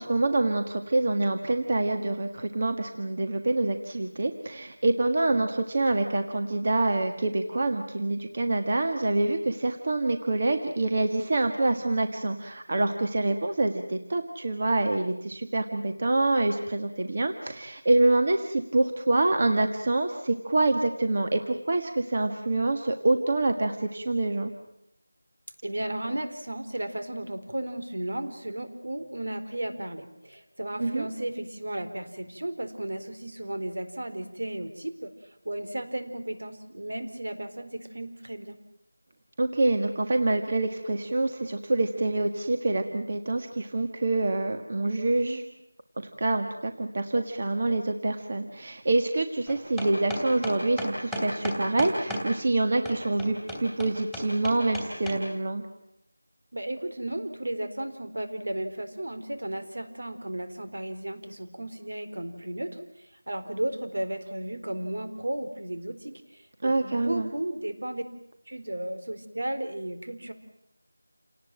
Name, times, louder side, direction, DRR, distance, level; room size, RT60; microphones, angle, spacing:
voice 1, 0.0-24.5 30.8-31.1 39.4-45.4 46.2-55.6 66.6-67.3, right 2 dB, 30° right, 5 dB, 1.6 m, -26 dB
voice 2, 25.6-35.1 35.4-38.6 56.5-68.0 68.5-70.3, right 1 dB, 70° right, 9 dB, 4.2 m, -34 dB
sound 1, 49.5-52.2 52.8-55.2, equal, ahead, 2.8 m, -33 dB
29.0 x 19.0 x 9.2 m, 0.80 s
figure-of-eight pair, 175°, 0 cm